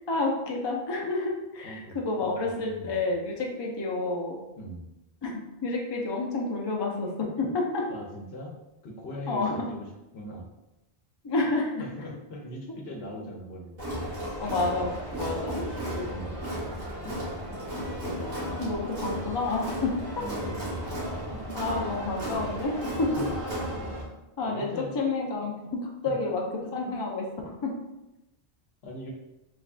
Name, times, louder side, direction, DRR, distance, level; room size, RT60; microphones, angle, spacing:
voice 1, 0.1-4.4 5.2-5.3 5.6-7.9 9.3-9.7 11.2-11.8 14.4-14.9 15.2-15.7 15.9-16.0 18.0-18.3 18.6-20.2 21.5-23.1 24.4-26.4 26.7-27.7, left 3 dB, 35° left, -1 dB, 0.5 m, -29 dB
voice 2, 1.6-3.0 4.6-4.9 7.9-8.5 8.8-9.9 10.1-10.5 11.8-13.9 16.0-16.4 17.0-17.1 20.2-21.5 23.2-23.3 23.8-23.9 24.4-24.9 26.1-26.3 26.6-26.9 28.8-29.1, equal, 70° left, 0 dB, 0.9 m, -41 dB
Crowd, 13.8-24.0, equal, 60° right, 1.4 m, -34 dB
3.4 x 3.3 x 2.4 m, 0.95 s
omnidirectional pair, 1.1 m